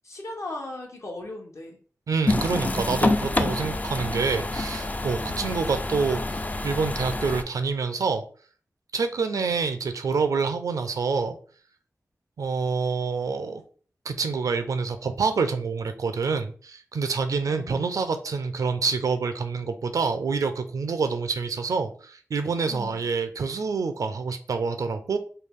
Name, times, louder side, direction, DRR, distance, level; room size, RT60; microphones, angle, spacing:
voice 1, 0.0-1.8 5.2-5.7 9.3-9.5 17.5-18.1 22.7-23.0, left 2 dB, 60° left, 1 dB, 0.9 m, -38 dB
voice 2, 2.1-8.2 8.9-11.4 12.4-13.6 14.1-25.2, right 4 dB, 85° right, 9 dB, 0.4 m, -27 dB
sound 1, 2.3-7.4, left 2 dB, 25° left, 0.3 m, -27 dB
3.2 x 2.3 x 3.5 m, 0.43 s
cardioid pair, 60°, 6 cm